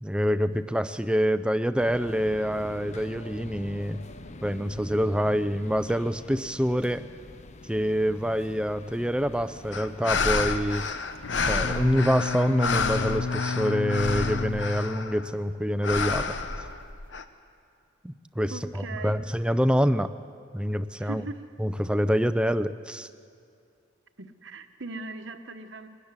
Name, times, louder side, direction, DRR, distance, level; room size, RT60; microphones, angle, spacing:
voice 1, 0.0-4.0 4.4-7.0 7.7-10.9 11.5-16.4 18.0-18.5 19.0-20.1 20.5-21.2 21.6-23.1, equal, 5° right, 12 dB, 0.5 m, -26 dB
sound 1, 1.8-13.7, left 2 dB, 35° left, 0.6 m, -45 dB
sound 2, 9.7-15.3 15.8-17.2, left 4 dB, 65° left, 1.0 m, -29 dB
Bowed string instrument, 11.1-15.5, left 4 dB, 90° left, 0.6 m, -32 dB
voice 2, 18.5-19.3 21.0-21.4 24.2-25.9, right 3 dB, 70° right, 7 dB, 1.2 m, -39 dB
21.0 x 13.5 x 9.7 m, 2.4 s
head